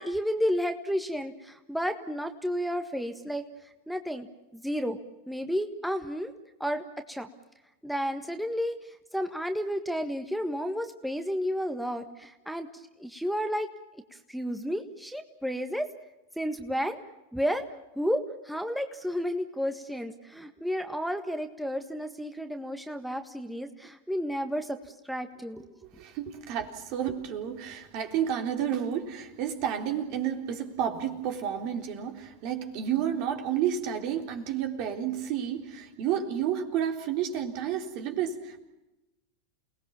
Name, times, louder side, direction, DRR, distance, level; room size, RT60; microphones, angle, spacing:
voice 1, 0.0-3.4 3.9-4.3 4.5-5.0 5.3-6.3 6.6-7.3 7.8-13.7 14.1-15.8 16.4-17.0 17.3-17.6 17.9-24.8 25.0-25.7, equal, ahead, 6 dB, 1.6 m, -32 dB
voice 2, 26.0-38.6, right 9 dB, 55° right, 5 dB, 3.7 m, -31 dB
29.0 x 19.0 x 7.3 m, 1.0 s
hypercardioid pair, 95°, 0 cm